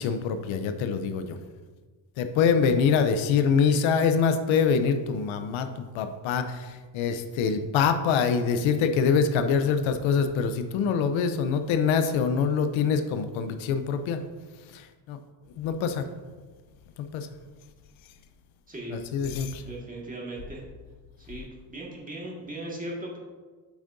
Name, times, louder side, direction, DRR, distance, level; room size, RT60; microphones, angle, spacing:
voice 1, 0.0-1.4 2.2-14.2 14.7-15.2 15.6-16.1 17.0-17.3 18.9-19.6, left 6 dB, 85° left, 8 dB, 0.7 m, -25 dB
voice 2, 18.7-19.0 19.6-20.6 21.2-23.2, right 1 dB, 15° right, -3 dB, 1.8 m, -38 dB
8.3 x 6.4 x 2.6 m, 1.4 s
cardioid pair, 115°, 47 cm